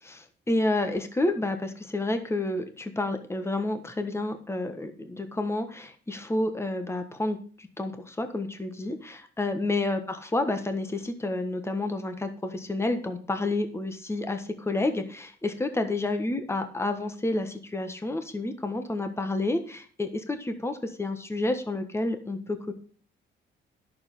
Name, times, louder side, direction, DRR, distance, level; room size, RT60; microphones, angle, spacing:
voice 1, 0.0-22.7, left 2 dB, 15° left, 7 dB, 1.4 m, -30 dB
10.5 x 7.1 x 5.4 m, 0.43 s
cardioid pair, 90°, 20 cm